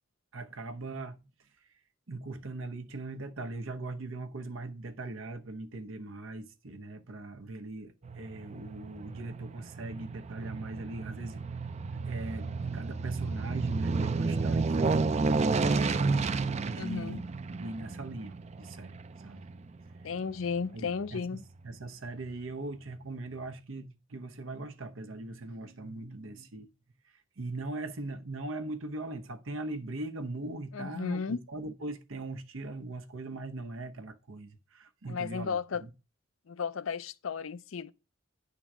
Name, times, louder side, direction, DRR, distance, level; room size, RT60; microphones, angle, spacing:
voice 1, 0.3-1.3 2.1-11.4 11.9-16.2 16.6-17.2 17.5-19.5 20.7-26.7 27.0-35.9, right 2 dB, 90° right, 1.0 m, -40 dB
Aircraft, 8.0-20.6 21.0-21.1, right 4 dB, 35° right, 0.4 m, -31 dB
voice 2, 16.7-17.2 20.0-21.4 30.7-31.4 35.1-35.8 36.5-37.9, left 5 dB, 90° left, 0.5 m, -34 dB
10.0 x 3.9 x 6.0 m
head